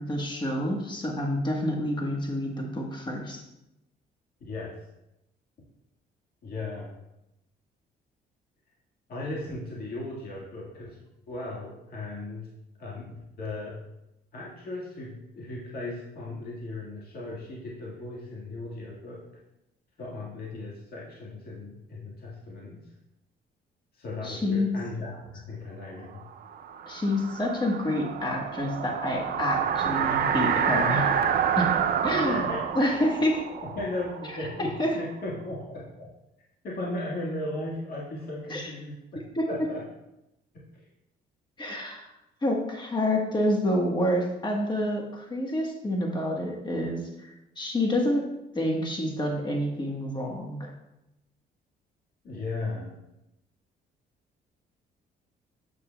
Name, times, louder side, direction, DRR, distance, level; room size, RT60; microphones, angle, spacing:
voice 1, 0.0-3.4 24.2-24.7 26.9-31.1 31.6-31.8 32.0-33.4 34.6-35.0 38.5-38.7 39.3-39.5 41.6-42.1 42.4-48.3 48.5-50.7, left 1 dB, 25° left, 1 dB, 1.3 m, -28 dB
voice 2, 4.4-4.7 6.4-6.9 9.1-11.0 11.3-12.4 12.8-13.7 14.3-19.2 20.0-22.8 23.9-26.2 32.1-32.6 33.6-36.1 36.6-39.2 39.5-39.8 40.5-40.8 52.2-53.0, left 2 dB, 60° left, -5 dB, 1.8 m, -36 dB
sound 1, 26.2-35.0, right 8 dB, 60° right, 0.5 m, -28 dB
7.4 x 6.8 x 2.3 m, 0.89 s
cardioid pair, 90°, 18 cm